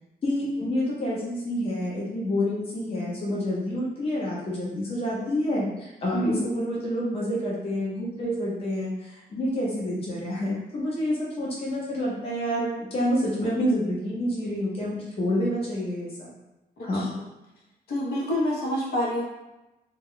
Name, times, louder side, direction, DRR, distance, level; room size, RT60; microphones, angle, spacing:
voice 1, 0.2-16.3 16.8-17.1, equal, 35° left, -5 dB, 0.7 m, -28 dB
voice 2, 17.9-19.2, left 1 dB, 75° left, -3 dB, 0.7 m, -27 dB
2.2 x 2.0 x 3.7 m, 0.97 s
wide cardioid pair, 170°, 17 cm